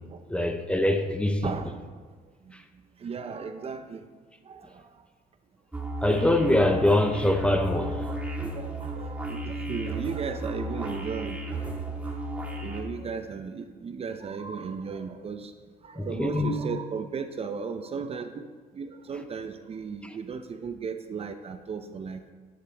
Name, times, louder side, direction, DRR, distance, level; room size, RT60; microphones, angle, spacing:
voice 1, 0.3-1.5 6.0-8.0 16.0-16.5, left 1 dB, 5° left, 0.8 m, -23 dB
voice 2, 1.4-1.8 2.5-2.6 3.0-4.0 4.5-4.9 7.8-7.9 8.4-11.8 12.1-15.5 15.8-18.5 18.7-22.2, right 5 dB, 35° right, 0.7 m, -36 dB
sound 1, 5.7-12.8, right 1 dB, 10° right, 1.7 m, -34 dB
11.5 x 11.0 x 3.4 m
cardioid pair, 110°, 17 cm